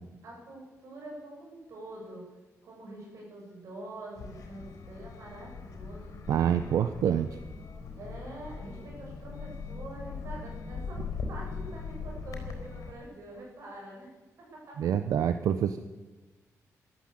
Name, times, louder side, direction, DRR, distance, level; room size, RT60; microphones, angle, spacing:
voice 1, 0.2-2.3 2.6-6.3 8.0-14.1 14.4-15.1, right 1 dB, 60° right, -2 dB, 7.1 m, -45 dB
sound 1, 4.2-12.9, left 5 dB, 75° left, 4.1 m, -40 dB
voice 2, 6.3-7.3 14.8-15.8, right 9 dB, 85° right, 10 dB, 0.7 m, -26 dB
14.5 x 12.5 x 7.7 m, 1.2 s
wide cardioid pair, 170°, 6 cm